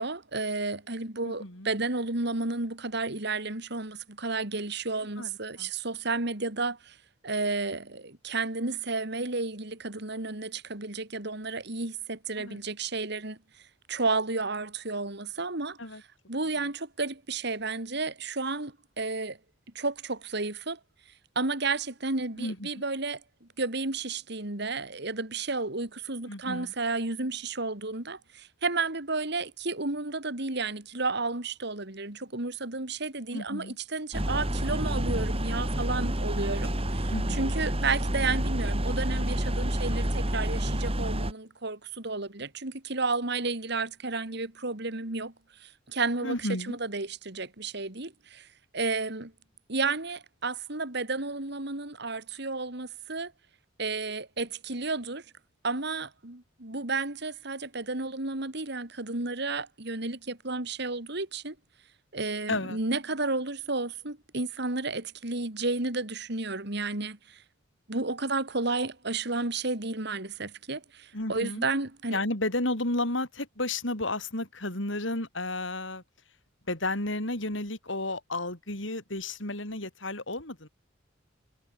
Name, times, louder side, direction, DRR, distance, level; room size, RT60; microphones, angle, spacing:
voice 1, 0.0-7.0 7.2-13.4 13.9-15.8 16.3-19.4 19.7-20.8 21.3-45.3 45.6-46.4 46.6-48.5 48.7-49.3 49.7-53.3 53.8-55.2 55.6-61.5 62.1-67.4 67.9-72.2, right 3 dB, 60° right, 2.8 m, -32 dB
voice 2, 1.2-1.7 5.2-5.7 12.4-12.6 15.8-16.0 22.4-22.7 26.3-26.7 33.3-33.8 37.1-37.5 46.2-46.8 62.5-62.8 71.1-71.7 72.1-76.0 76.7-80.7, left 2 dB, 70° left, 6.3 m, -32 dB
sound 1, 34.1-41.3, right 1 dB, 30° right, 4.6 m, -29 dB
head